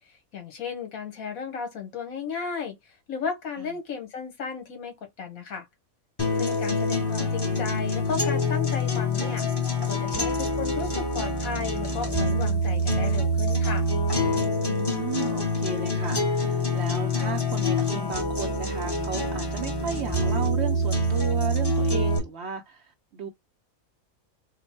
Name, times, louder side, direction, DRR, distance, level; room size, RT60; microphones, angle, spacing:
voice 1, 0.3-2.8 3.1-5.7 6.3-9.5 9.9-13.9, left 6 dB, 75° left, 1.6 m, -34 dB
sound 1, 6.2-22.2, left 1 dB, 20° left, 1.1 m, -26 dB
voice 2, 14.6-23.3, right 6 dB, 60° right, 0.8 m, -35 dB
3.8 x 2.1 x 4.2 m
omnidirectional pair, 1.5 m